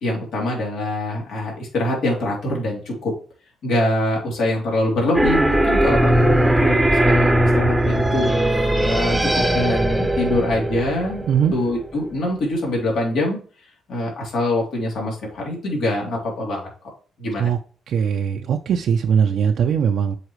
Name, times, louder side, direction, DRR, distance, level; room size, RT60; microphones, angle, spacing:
voice 1, 0.0-3.1 3.6-11.2 11.5-13.4 13.9-16.7 17.2-17.5, left 1 dB, 70° left, -2 dB, 3.3 m, -24 dB
sound 1, 5.1-11.9, right 1 dB, 5° right, 0.9 m, -19 dB
voice 2, 17.9-20.2, right 7 dB, 70° right, 3 dB, 0.5 m, -20 dB
8.0 x 4.7 x 3.2 m, 0.40 s
cardioid pair, 90°, 0 cm